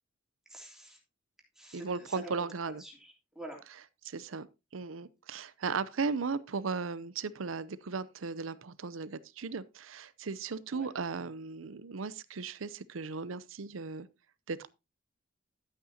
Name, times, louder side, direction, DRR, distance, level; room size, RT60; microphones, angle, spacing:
voice 1, 0.5-1.0 1.5-2.3 2.8-3.6 10.7-10.9, right 2 dB, 5° right, 3.0 m, -47 dB
voice 2, 1.7-2.8 4.0-4.5 4.7-14.1 14.5-14.7, right 4 dB, 80° right, 0.6 m, -36 dB
12.0 x 8.3 x 2.8 m
head